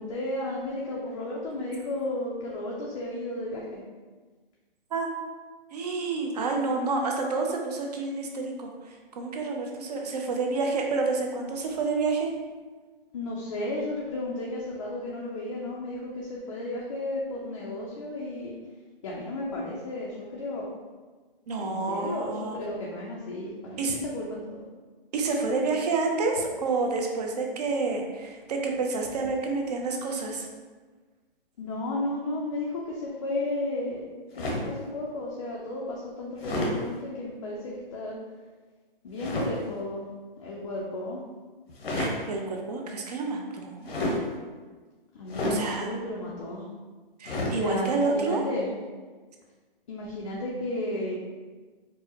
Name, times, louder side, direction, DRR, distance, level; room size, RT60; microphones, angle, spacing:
voice 1, 0.0-3.8 13.1-18.5 19.0-20.6 21.6-24.6 31.6-34.1 34.4-38.2 39.0-40.1 40.4-41.2 45.1-46.7 47.4-48.7 49.9-51.2, left 2 dB, 35° left, -4 dB, 0.4 m, -33 dB
voice 2, 5.7-12.3 21.5-22.6 23.8-24.0 25.1-30.5 42.0-43.9 45.5-45.9 47.2-48.4, right 3 dB, 45° right, 2 dB, 0.5 m, -29 dB
sound 1, 34.3-34.8 36.4-36.8 39.2-39.5 41.7-42.2 43.8-44.2 45.3-45.6 47.2-47.6, left 1 dB, 85° left, 1.0 m, -29 dB
4.6 x 2.0 x 2.8 m, 1.4 s
hypercardioid pair, 145°, 29 cm